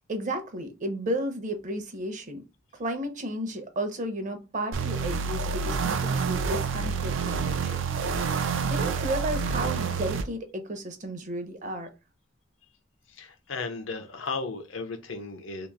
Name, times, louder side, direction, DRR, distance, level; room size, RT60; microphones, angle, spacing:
voice 1, 0.1-2.4 2.7-7.8 8.6-11.9, right 1 dB, 40° right, 0.7 m, -33 dB
sound 1, 4.7-10.2, right 5 dB, 70° right, 0.4 m, -28 dB
voice 2, 13.1-15.7, left 4 dB, 75° left, 0.7 m, -35 dB
3.0 x 2.9 x 3.5 m
head